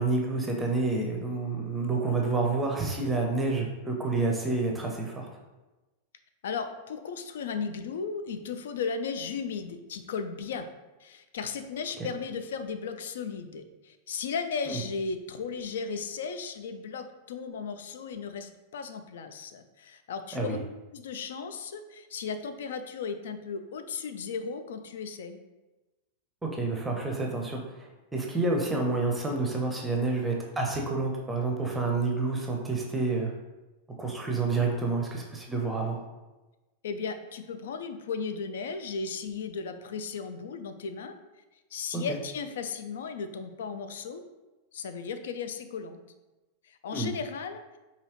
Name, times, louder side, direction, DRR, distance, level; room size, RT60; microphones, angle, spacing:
voice 1, 0.0-5.3 12.0-12.1 14.7-14.8 20.3-20.6 26.4-33.3 34.0-36.0 41.9-42.0 46.9-47.1, right 3 dB, 10° right, 1 dB, 0.6 m, -29 dB
voice 2, 6.4-10.7 11.0-20.6 20.9-25.4 36.8-41.1 41.7-44.2 44.7-46.0 46.6-47.8, left 5 dB, 60° left, 9 dB, 0.3 m, -35 dB
4.7 x 2.8 x 3.0 m, 1.1 s
figure-of-eight pair, 90°, 0 cm